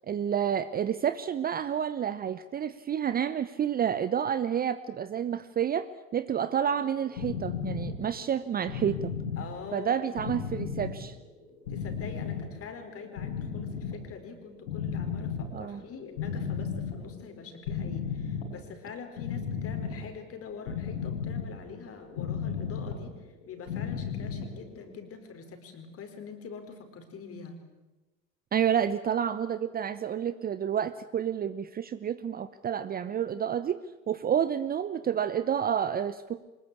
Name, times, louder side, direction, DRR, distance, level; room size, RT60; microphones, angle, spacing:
voice 1, 0.1-9.1 9.7-11.2 15.5-15.8 28.5-33.8 34.1-36.5, right 8 dB, 25° right, 14 dB, 0.9 m, -29 dB
sound 1, 6.6-25.1, left 6 dB, 65° left, 6.7 m, -35 dB
voice 2, 9.4-10.5 11.7-27.6, left 5 dB, 35° left, 7 dB, 4.8 m, -44 dB
24.5 x 21.0 x 8.5 m, 1.1 s
figure-of-eight pair, 80°, 40 cm